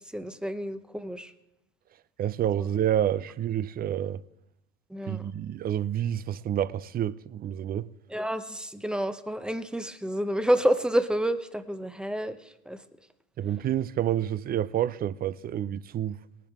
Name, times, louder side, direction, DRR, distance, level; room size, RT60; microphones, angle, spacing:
voice 1, 0.0-1.3 2.6-2.7 4.9-5.3 8.1-12.4 12.7-12.8, right 1 dB, 5° right, 0.7 m, -29 dB
voice 2, 2.2-4.2 5.1-7.9 13.4-16.2, right 11 dB, 30° right, 0.5 m, -28 dB
18.5 x 10.5 x 3.5 m
supercardioid pair, 95°, 30 cm